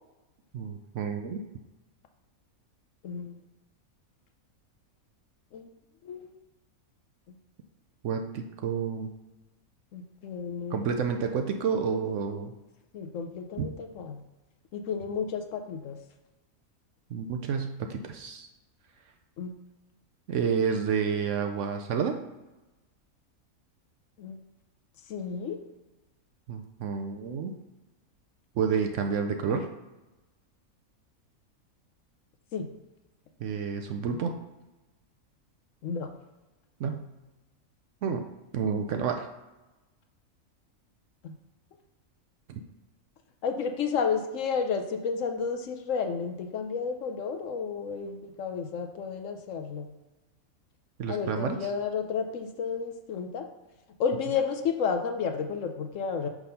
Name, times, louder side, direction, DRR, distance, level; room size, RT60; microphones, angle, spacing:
voice 1, 0.5-1.4 8.0-9.1 10.7-12.5 13.6-13.7 17.1-18.5 20.3-22.2 26.5-27.6 28.5-29.7 33.4-34.3 36.8-37.1 38.0-38.2 38.5-39.3 42.5-42.6 51.0-51.7, right 6 dB, 65° right, 5 dB, 0.8 m, -29 dB
voice 2, 3.0-3.3 5.5-5.7 6.0-6.3 9.9-10.8 12.9-14.2 14.7-16.0 19.4-19.5 24.2-24.4 25.1-25.6 32.5-32.7 35.8-36.1 41.2-41.3 43.4-49.9 51.1-53.5 54.0-56.3, left 6 dB, 65° left, 6 dB, 0.9 m, -31 dB
6.0 x 3.5 x 5.5 m, 1.1 s
omnidirectional pair, 1.5 m